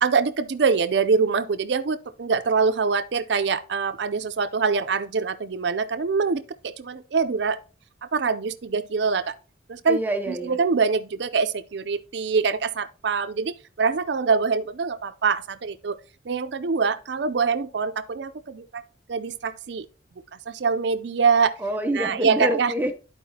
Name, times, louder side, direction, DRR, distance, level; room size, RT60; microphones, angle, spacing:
voice 1, 0.0-7.6 8.1-9.3 9.7-10.0 10.5-16.0 16.3-18.8 19.1-19.9 20.5-21.6 21.9-22.7, right 5 dB, 65° right, 0.5 m, -24 dB
voice 2, 9.9-10.6 21.6-22.9, equal, 10° right, 0.6 m, -26 dB
12.0 x 4.7 x 2.8 m
head